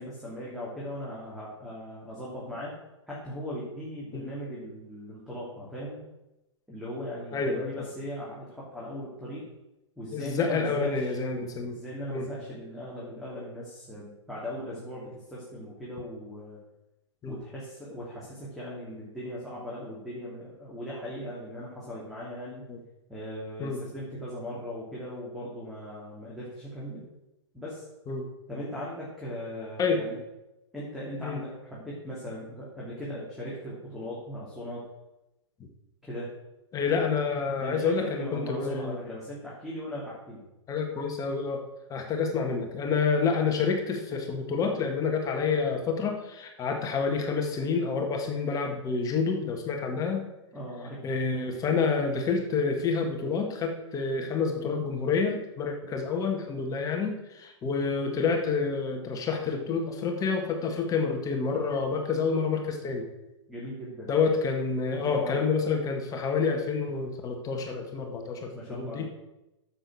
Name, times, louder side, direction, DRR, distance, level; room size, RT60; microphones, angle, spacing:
voice 1, 0.0-2.8 3.1-6.0 6.7-9.4 10.0-11.1 11.7-16.6 17.3-22.7 23.1-27.0 27.5-27.8 28.5-30.2 30.7-34.8 36.1-36.3 37.6-40.4 50.5-51.1 63.5-64.1 64.9-65.4 68.5-69.0, equal, ahead, -7 dB, 3.0 m, -38 dB
voice 2, 7.3-7.7 10.1-11.8 12.1-12.3 17.2-17.4 22.7-22.8 23.6-23.8 28.1-28.3 29.8-30.0 31.2-31.4 36.7-39.0 40.7-41.6 41.9-50.3 51.0-63.1 64.1-69.0, left 5 dB, 25° left, 3 dB, 1.7 m, -28 dB
9.9 x 7.3 x 6.2 m, 0.96 s
hypercardioid pair, 115°, 15 cm